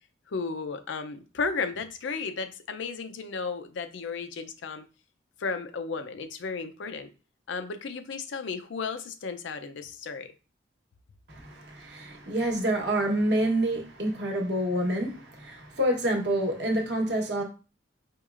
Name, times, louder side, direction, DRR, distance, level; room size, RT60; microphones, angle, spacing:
voice 1, 0.3-4.9 5.4-7.1 7.5-10.3, left 4 dB, 80° left, 0.5 m, -34 dB
voice 2, 11.3-17.4, right 1 dB, 60° right, 1.0 m, -27 dB
4.6 x 3.0 x 2.4 m
head